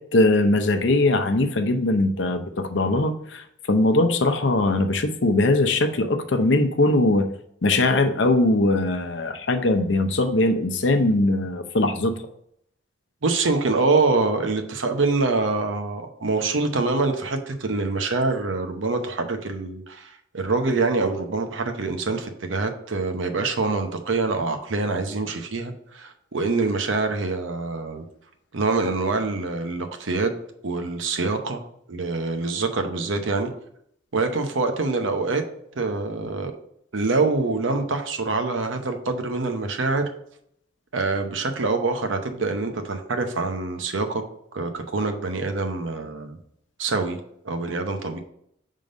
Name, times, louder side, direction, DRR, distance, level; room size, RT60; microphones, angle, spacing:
voice 1, 0.1-7.3 7.6-12.1, left 2 dB, 65° left, 7 dB, 0.7 m, -21 dB
voice 2, 13.2-28.0 28.5-30.4 30.6-31.6 31.9-33.5 34.1-35.4 35.8-36.5 36.9-40.1 40.9-44.2 44.5-46.4 46.8-47.2 47.4-48.2, right 3 dB, 85° right, 6 dB, 0.8 m, -25 dB
5.2 x 3.8 x 5.1 m, 0.71 s
head